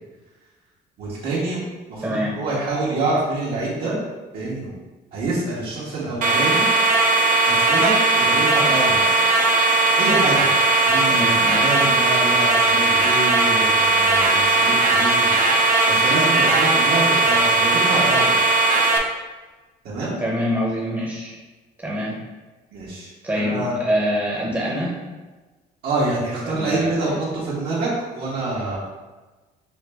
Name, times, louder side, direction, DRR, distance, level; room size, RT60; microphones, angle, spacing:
voice 1, 1.0-4.0 4.3-4.7 5.1-6.7 7.5-9.0 10.0-10.6 10.8-18.4 19.8-20.2 22.7-23.8 25.8-28.8, right 2 dB, 70° right, -7 dB, 1.3 m, -26 dB
voice 2, 2.0-2.4 11.1-11.7 20.2-21.4 21.8-22.2 23.2-25.0 26.5-27.2, equal, 15° right, -4 dB, 0.8 m, -25 dB
sound 1, 6.2-19.0, right 2 dB, 50° right, 0.6 m, -18 dB
5.4 x 2.1 x 3.4 m, 1.2 s
cardioid pair, 110°, 17 cm